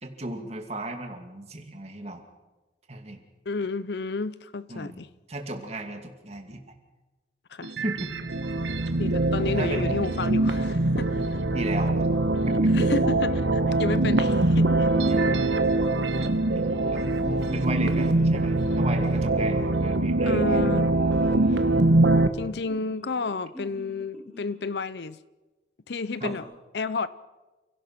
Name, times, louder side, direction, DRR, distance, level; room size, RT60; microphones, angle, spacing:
voice 1, 0.0-2.2 2.9-3.2 4.7-5.0 5.3-6.6 7.8-8.1 8.9-9.1 9.4-9.9 11.5-12.1 12.5-12.9 15.1-15.8 16.5-17.0 17.5-20.8 26.2-26.4, right 1 dB, 35° right, 4 dB, 2.5 m, -35 dB
voice 2, 3.5-5.1 7.5-7.7 9.0-11.2 12.5-14.9 20.2-20.9 21.5-21.6 22.3-25.2 25.9-26.4 26.7-27.1, left 4 dB, 65° left, 16 dB, 0.6 m, -31 dB
sound 1, 7.6-22.3, right 2 dB, 80° right, 1.4 m, -23 dB
sound 2, 16.3-19.3 20.8-21.8 22.6-24.7 26.1-26.4, equal, ahead, 6.4 m, -46 dB
29.5 x 17.0 x 5.9 m, 1.1 s
head